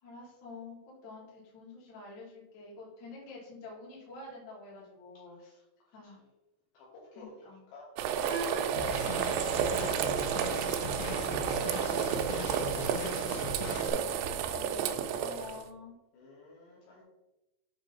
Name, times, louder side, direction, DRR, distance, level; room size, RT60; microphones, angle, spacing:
voice 1, 0.0-5.6 5.9-6.2 7.1-7.6 13.9-16.0, left 3 dB, 50° left, -4 dB, 3.0 m, -48 dB
voice 2, 5.5-6.2 6.7-7.5 7.7-11.6 11.9-13.2 16.1-17.0, left 2 dB, 70° left, -5 dB, 3.4 m, -51 dB
sound 1, 8.0-15.6, right 8 dB, 90° right, 2.4 m, -31 dB
sound 2, 8.3-14.3, right 4 dB, 25° left, 1.9 m, -47 dB
sound 3, 8.8-13.9, left 3 dB, 90° left, 3.4 m, -39 dB
8.1 x 3.6 x 5.2 m, 0.96 s
omnidirectional pair, 5.6 m